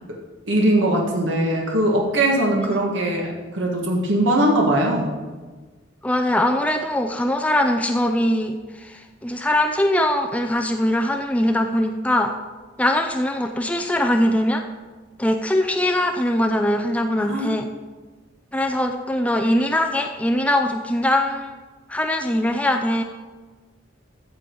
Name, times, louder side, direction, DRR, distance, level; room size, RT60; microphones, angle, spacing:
voice 1, 0.5-3.3 3.5-5.1 17.2-17.5, right 1 dB, 70° right, -1 dB, 1.7 m, -20 dB
voice 2, 6.0-12.3 12.8-14.6 15.2-17.7 18.5-21.5 21.9-23.0, left 1 dB, 5° left, 3 dB, 0.5 m, -21 dB
14.5 x 7.2 x 4.6 m, 1.3 s
head